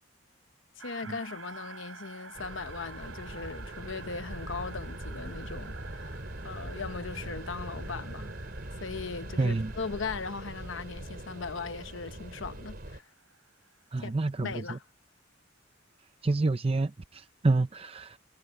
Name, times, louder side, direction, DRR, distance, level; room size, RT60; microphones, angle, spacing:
voice 1, 0.8-8.3 8.8-13.1 14.0-14.1 14.4-14.8, left 4 dB, 65° left, 0.9 m, -39 dB
sound 1, 0.8-13.5, right 5 dB, 80° right, 7.8 m, -49 dB
sound 2, 2.3-13.0, right 1 dB, 50° right, 3.1 m, -42 dB
voice 2, 9.4-9.7 13.9-14.8 16.2-18.2, right 3 dB, 30° right, 0.5 m, -28 dB
head